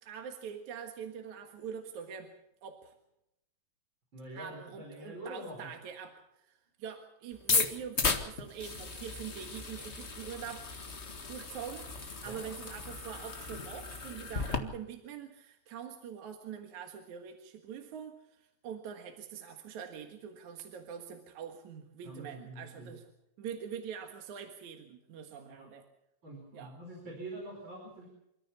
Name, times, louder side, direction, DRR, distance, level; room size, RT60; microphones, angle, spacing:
voice 1, 0.0-2.3 2.6-2.9 4.3-6.5 6.8-10.7 11.0-23.1 23.4-25.9 26.5-26.7, right 7 dB, 60° right, 4 dB, 2.7 m, -44 dB
voice 2, 4.1-5.7 12.2-12.4 22.0-22.9 25.5-25.7 26.2-28.1, right 1 dB, 30° right, -1 dB, 5.2 m, -45 dB
sound 1, 7.4-14.6, left 4 dB, 75° left, 0.6 m, -35 dB
28.0 x 14.0 x 7.1 m, 0.84 s
omnidirectional pair, 4.4 m